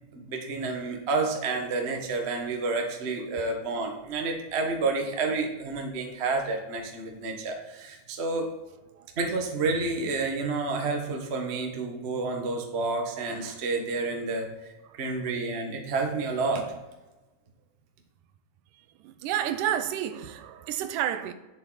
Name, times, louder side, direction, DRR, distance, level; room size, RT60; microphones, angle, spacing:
voice 1, 0.1-8.4 9.2-16.6, right 3 dB, 65° right, 0.6 m, -30 dB
voice 2, 19.0-21.3, right 10 dB, 90° right, 2.3 m, -30 dB
11.0 x 7.3 x 4.1 m
omnidirectional pair, 3.6 m